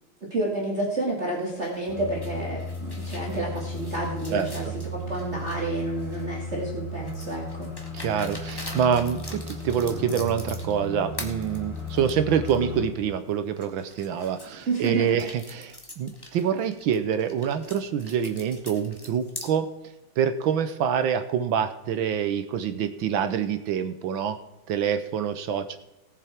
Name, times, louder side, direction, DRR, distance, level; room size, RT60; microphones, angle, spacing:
voice 1, 0.3-7.7 14.7-15.1, right 2 dB, 30° right, -2 dB, 2.3 m, -30 dB
sound 1, 1.6-6.4 7.1-10.8 11.1-12.6 13.0-13.1 13.6-19.5, left 1 dB, 10° left, 1.3 m, -44 dB
sound 2, 1.9-12.9, left 1 dB, 35° left, 4.6 m, -35 dB
voice 2, 4.3-4.7 7.9-19.7 20.2-24.4 24.7-25.8, right 8 dB, 70° right, 10 dB, 1.5 m, -26 dB
18.5 x 7.1 x 4.4 m, 0.98 s
omnidirectional pair, 2.4 m